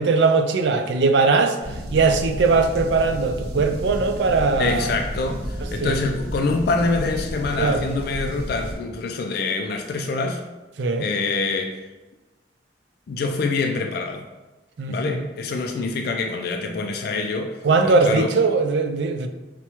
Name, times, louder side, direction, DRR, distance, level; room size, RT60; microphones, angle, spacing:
voice 1, 0.0-1.6 1.9-4.9 5.6-6.0 7.6-7.8 10.8-11.1 14.8-15.3 17.6-19.3, right 4 dB, 80° right, 7 dB, 0.4 m, -20 dB
sound 1, 1.6-8.7, equal, 65° right, 1.0 m, -32 dB
voice 2, 4.6-10.4 11.0-11.8 13.1-14.3 14.9-18.3, left 3 dB, 60° left, 4 dB, 0.3 m, -25 dB
6.0 x 2.2 x 2.8 m, 1.1 s
head